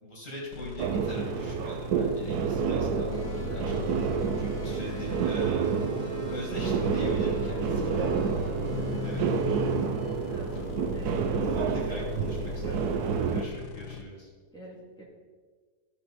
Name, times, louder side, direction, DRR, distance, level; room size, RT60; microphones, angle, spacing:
voice 1, 0.0-5.8 6.3-8.1 9.0-9.2 10.5-10.8 11.4-12.9 13.2-14.3, equal, 55° left, -3 dB, 2.6 m, -42 dB
sound 1, 0.5-14.0, left 10 dB, 90° left, 1.3 m, -40 dB
sound 2, 0.8-13.5, right 7 dB, 80° right, 1.2 m, -29 dB
sound 3, 3.1-11.3, left 3 dB, 25° left, 2.6 m, -40 dB
voice 2, 8.3-9.8 10.3-12.8 13.9-14.1 14.5-15.0, right 2 dB, 5° left, -6 dB, 2.5 m, -48 dB
15.0 x 5.7 x 4.2 m, 1.5 s
omnidirectional pair, 1.7 m